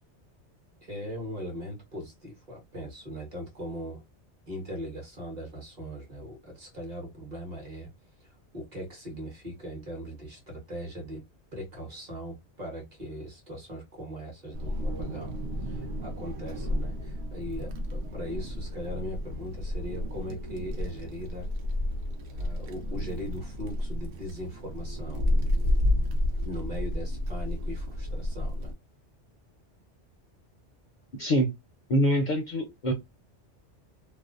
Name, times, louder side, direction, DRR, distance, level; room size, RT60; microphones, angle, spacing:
voice 1, 0.8-4.0 4.5-7.9 8.2-11.2 11.5-15.4 15.6-21.5 22.3-25.3 26.4-28.7, equal, 40° right, 1.0 m, -39 dB
Wind, 14.5-28.7, left 1 dB, 70° right, 0.8 m, -31 dB
voice 2, 31.2-31.5 31.9-32.9, equal, 55° left, 0.5 m, -24 dB
2.5 x 2.0 x 2.4 m
omnidirectional pair, 1.2 m